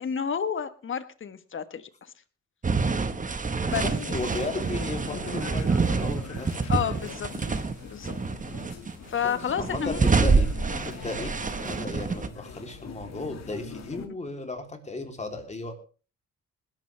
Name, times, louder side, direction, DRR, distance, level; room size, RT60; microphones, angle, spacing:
voice 1, 0.0-1.9 3.7-4.1 6.7-8.1 9.1-10.4 14.0-14.1, left 7 dB, 40° left, 12 dB, 1.3 m, -31 dB
sound 1, 2.6-7.7 8.0-8.9 9.4-12.3, right 4 dB, 25° right, 1.4 m, -27 dB
sound 2, 3.7-14.1, left 6 dB, 60° left, 2.2 m, -42 dB
voice 2, 3.7-6.7 9.2-10.5 10.8-11.3 11.6-15.7, left 2 dB, 25° left, 4 dB, 3.4 m, -35 dB
20.0 x 12.0 x 3.4 m, 0.37 s
cardioid pair, 90°, 30 cm